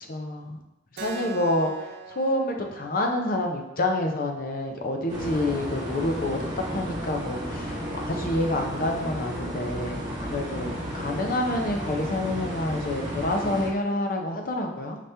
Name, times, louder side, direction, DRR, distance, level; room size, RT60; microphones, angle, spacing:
voice 1, 0.1-0.6 1.0-1.7 2.1-10.0 10.3-15.0, left 1 dB, 50° left, 3 dB, 0.6 m, -28 dB
Keyboard (musical), 1.0-6.1, right 4 dB, 60° right, 0.5 m, -44 dB
sound 1, 5.1-13.7, equal, 25° right, 1.1 m, -33 dB
5.1 x 2.8 x 3.3 m, 0.94 s
head